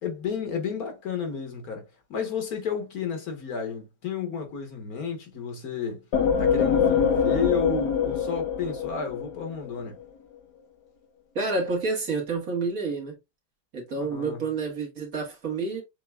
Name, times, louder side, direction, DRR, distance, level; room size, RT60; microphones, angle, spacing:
voice 1, 0.0-6.0 6.4-10.0 14.1-14.4, left 6 dB, 65° left, 1.6 m, -32 dB
sound 1, 6.1-9.7, left 7 dB, 80° left, 1.5 m, -24 dB
voice 2, 11.4-13.2 13.7-15.8, right 3 dB, 55° right, 1.9 m, -29 dB
6.9 x 2.9 x 2.3 m
omnidirectional pair, 1.7 m